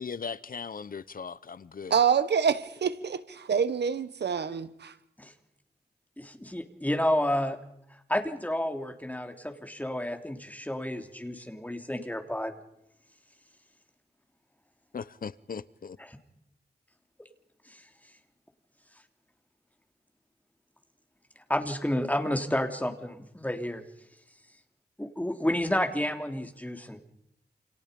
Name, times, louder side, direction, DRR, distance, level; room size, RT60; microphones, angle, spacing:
voice 1, 0.0-1.9 14.9-16.0, left 6 dB, 55° left, 17 dB, 0.9 m, -38 dB
voice 2, 1.9-4.9, right 7 dB, 85° right, 13 dB, 1.6 m, -26 dB
voice 3, 6.2-7.6 8.1-12.5 16.1-16.2 17.7-17.8 21.5-23.8 25.0-27.0, left 1 dB, 10° left, 6 dB, 3.4 m, -30 dB
29.0 x 28.5 x 5.4 m, 0.80 s
cardioid pair, 75°, 17 cm